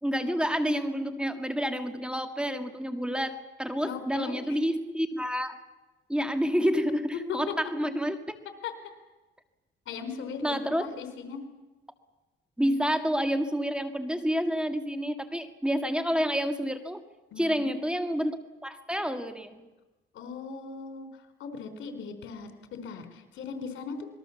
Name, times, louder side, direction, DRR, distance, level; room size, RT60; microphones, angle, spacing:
voice 1, 0.0-5.6 6.1-8.2 10.4-10.9 12.6-17.0 17.4-18.4 18.6-19.6, equal, 5° right, 6 dB, 2.0 m, -29 dB
voice 2, 3.8-4.6 7.3-7.5 8.6-8.7 9.9-10.5 10.8-11.4 17.3-17.7 20.1-24.1, left 5 dB, 80° left, 7 dB, 4.0 m, -38 dB
27.0 x 21.0 x 7.2 m, 1.1 s
cardioid pair, 90°, 20 cm